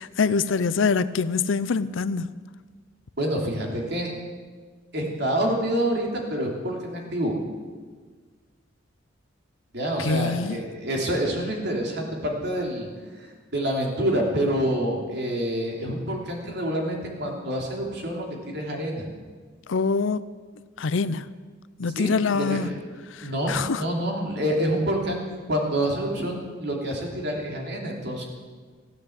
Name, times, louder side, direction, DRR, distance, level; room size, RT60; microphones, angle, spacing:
voice 1, 0.0-2.3 9.9-10.6 19.7-20.2 20.8-21.3 21.8-22.7 23.1-23.8, left 4 dB, 70° left, 0.5 m, -25 dB
voice 2, 3.2-4.1 4.9-7.4 9.7-12.9 13.5-19.1 22.0-22.7 23.2-28.2, right 1 dB, 55° right, 3.2 m, -27 dB
16.0 x 9.6 x 8.1 m
head